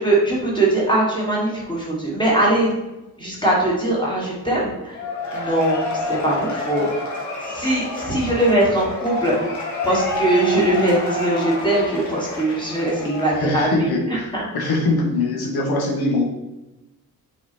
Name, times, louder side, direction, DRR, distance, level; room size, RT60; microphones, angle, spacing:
voice 1, 0.0-2.7 3.2-5.0 5.3-6.9 7.5-9.6 9.8-13.9 14.3-14.4, right 1 dB, 10° left, -5 dB, 1.6 m, -21 dB
Cheering / Applause / Crowd, 4.9-13.8, left 2 dB, 50° left, 1.6 m, -29 dB
voice 2, 13.3-14.3 14.5-16.2, left 2 dB, 80° left, -2 dB, 1.7 m, -22 dB
5.9 x 4.3 x 4.2 m, 1.0 s
wide cardioid pair, 175°, 38 cm